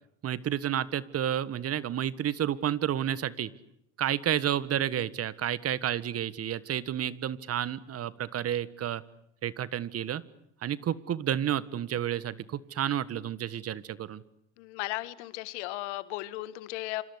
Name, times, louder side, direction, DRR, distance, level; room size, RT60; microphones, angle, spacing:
voice 1, 0.2-3.5 4.0-9.0 9.4-10.2 10.6-14.2, right 10 dB, 40° right, 18 dB, 1.6 m, -30 dB
voice 2, 14.6-17.0, left 18 dB, 75° left, 16 dB, 1.8 m, -36 dB
27.5 x 26.5 x 8.1 m, 0.75 s
hypercardioid pair, 75°, 35 cm